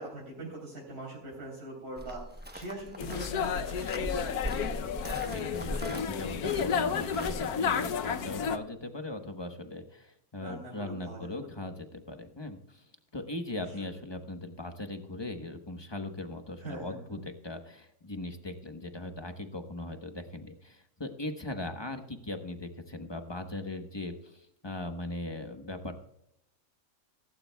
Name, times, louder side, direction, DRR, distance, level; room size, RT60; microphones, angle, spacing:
voice 1, 0.0-2.2 2.5-4.6 10.4-11.3 13.8-13.9 16.6-17.2, right 1 dB, 85° right, -4 dB, 4.2 m, -42 dB
sound 1, 2.0-7.3, equal, 10° right, 0.7 m, -40 dB
sound 2, 3.0-8.6, left 7 dB, 85° left, 1.3 m, -31 dB
voice 2, 5.2-12.8 13.1-26.0, left 2 dB, 20° left, 6 dB, 1.0 m, -39 dB
16.5 x 15.5 x 2.3 m, 0.79 s
omnidirectional pair, 1.5 m